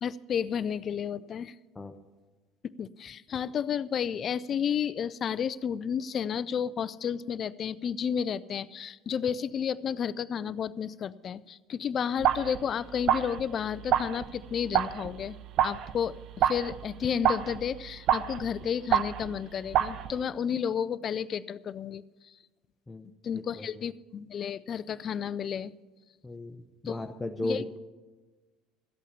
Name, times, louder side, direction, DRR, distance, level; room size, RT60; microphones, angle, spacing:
voice 1, 0.0-1.5 2.6-22.3 23.2-25.7 26.9-27.0 27.4-27.8, left 8 dB, 40° left, 18 dB, 0.4 m, -32 dB
sound 1, 12.2-12.7 12.9-19.4 19.7-20.2, right 10 dB, 55° right, 0.5 m, -29 dB
voice 2, 23.3-23.7 26.2-27.8, left 1 dB, 15° left, 5 dB, 0.8 m, -36 dB
14.0 x 8.3 x 6.9 m, 1.3 s
hypercardioid pair, 70°, 0 cm